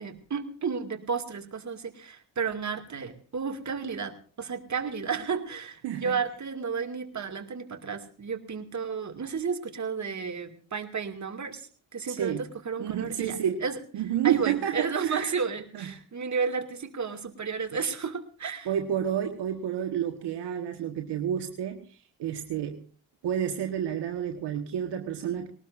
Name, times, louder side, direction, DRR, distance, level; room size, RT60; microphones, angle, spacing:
voice 1, 0.0-13.8 14.2-18.7, right 5 dB, 40° right, 6 dB, 2.4 m, -32 dB
voice 2, 12.1-12.5 12.8-13.6 13.9-15.3 15.7-15.9 18.6-22.8 23.2-25.5, right 9 dB, 65° right, 5 dB, 1.6 m, -30 dB
21.0 x 19.0 x 2.6 m, 0.40 s
hypercardioid pair, 45°, 44 cm